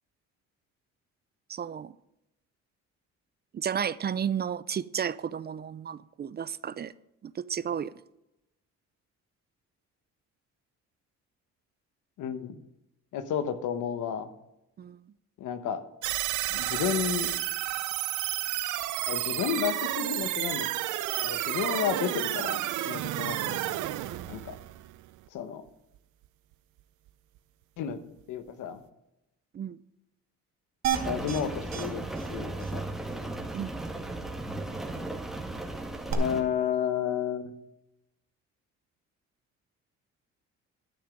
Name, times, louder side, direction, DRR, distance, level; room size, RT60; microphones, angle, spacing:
voice 1, 1.5-1.9 3.5-6.9 7.2-7.9 14.8-15.0 24.1-24.3 29.5-29.8 33.5-33.8, right 8 dB, 35° right, 0.4 m, -33 dB
voice 2, 12.2-12.6 13.1-14.3 15.4-15.8 16.5-17.3 19.1-20.7 21.2-23.6 24.2-24.5 25.3-25.6 27.8-28.0 28.3-28.8 31.0-32.0 32.3-32.8 36.1-37.5, left 8 dB, 85° left, 1.1 m, -31 dB
sound 1, 16.0-25.3, right 15 dB, 85° right, 0.6 m, -31 dB
sound 2, 30.8-31.4 31.7-31.8 32.2-32.3 32.6-32.7 36.1-36.2, right 10 dB, 60° right, 1.4 m, -30 dB
Rain, 30.9-36.4, right 2 dB, ahead, 1.8 m, -36 dB
11.5 x 6.8 x 5.2 m
cardioid pair, 90°, 30 cm